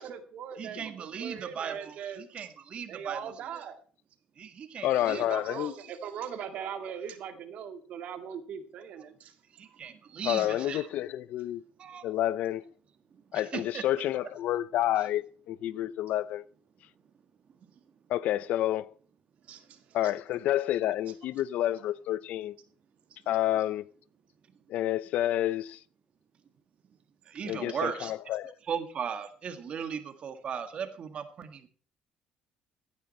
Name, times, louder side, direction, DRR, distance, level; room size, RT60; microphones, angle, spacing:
voice 1, 0.0-2.5 2.9-3.7 4.9-9.3 10.4-10.9 19.5-19.8, right 8 dB, 65° right, 2.1 m, -40 dB
voice 2, 0.6-3.6 4.4-5.2 5.8-5.9 9.6-10.9 11.8-12.0 13.3-13.8 15.0-15.1 27.3-28.1 28.7-31.7, right 7 dB, 45° right, 1.8 m, -37 dB
voice 3, 4.8-5.7 10.2-11.6 12.0-12.6 13.3-16.4 18.1-18.9 19.9-22.5 23.3-23.9 24.7-25.8 27.4-28.5, left 13 dB, 75° left, 0.5 m, -29 dB
16.0 x 9.8 x 4.4 m
cardioid pair, 125°, 3 cm